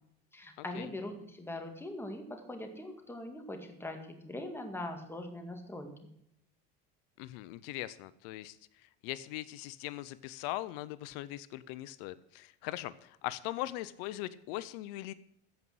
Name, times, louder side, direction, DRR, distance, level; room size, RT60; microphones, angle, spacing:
voice 1, 0.3-6.1, left 1 dB, 5° left, 4 dB, 1.9 m, -42 dB
voice 2, 7.2-8.6 9.0-15.1, left 16 dB, 75° left, 16 dB, 0.7 m, -40 dB
15.0 x 5.5 x 7.7 m, 0.77 s
supercardioid pair, 115°, 30 cm